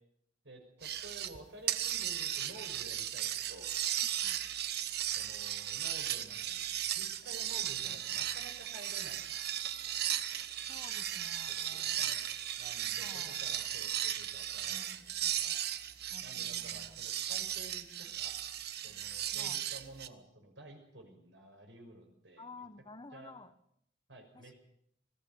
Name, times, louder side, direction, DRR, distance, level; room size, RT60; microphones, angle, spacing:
voice 1, 0.4-3.7 5.1-9.4 11.5-12.2 12.6-15.0 15.4-15.6 16.2-18.4 18.8-22.6 23.1-23.3 24.1-24.6, right 2 dB, 85° right, 4 dB, 6.1 m, -52 dB
sound 1, 0.8-1.4 1.7-20.1, right 11 dB, 60° right, 1.0 m, -36 dB
voice 2, 4.0-4.4 7.6-8.0 10.7-12.1 12.9-13.4 14.7-15.3 16.1-17.0 19.3-19.6 22.4-23.5 24.3-24.5, left 3 dB, 25° left, 11 dB, 1.3 m, -53 dB
20.5 x 15.5 x 8.8 m, 0.70 s
head